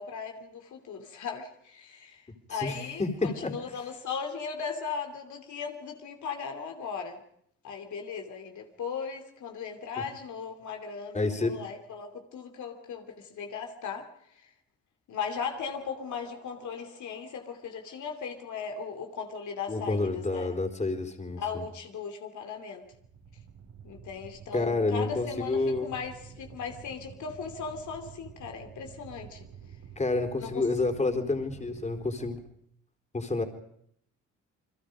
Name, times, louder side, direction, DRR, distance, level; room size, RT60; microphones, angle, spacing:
voice 1, 0.0-7.2 7.6-14.1 14.3-14.5 15.1-20.6 21.4-22.8 23.8-29.4 30.4-30.6 31.0-31.4, left 6 dB, 75° left, 4 dB, 2.9 m, -38 dB
voice 2, 2.5-3.5 10.0-10.1 11.1-11.6 19.7-21.6 24.5-25.9 30.0-32.4 33.1-33.4, left 3 dB, 25° left, 5 dB, 4.1 m, -29 dB
sound 1, 15.5-19.4 22.8-32.4, right 7 dB, 80° right, 5.3 m, -50 dB
29.5 x 22.5 x 5.2 m, 0.69 s
cardioid pair, 90°, 30 cm